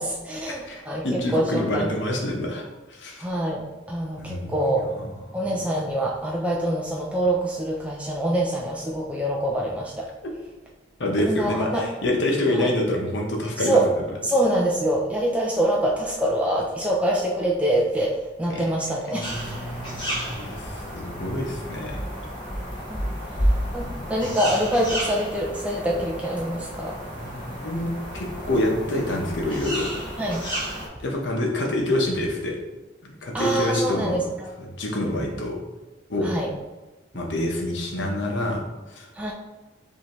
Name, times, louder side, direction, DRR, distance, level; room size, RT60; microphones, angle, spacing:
voice 1, 0.0-1.9 3.2-4.9 5.3-10.1 11.2-11.9 12.6-12.7 13.6-13.9 14.2-19.4 22.9-23.0 23.4-27.0 30.2-30.5 33.3-34.5 36.2-36.5 39.1-39.3, right 1 dB, 5° right, -2 dB, 0.4 m, -25 dB
voice 2, 0.7-3.3 4.2-5.4 11.0-13.8 18.5-18.6 19.1-22.0 23.8-24.4 27.1-29.9 31.0-32.6 33.2-34.2 34.8-35.6 36.1-36.3 37.1-38.6 38.9-39.1, left 1 dB, 80° left, 0 dB, 0.9 m, -27 dB
sound 1, 19.2-30.9, equal, 25° left, 1.0 m, -31 dB
5.4 x 2.8 x 3.0 m, 1.2 s
head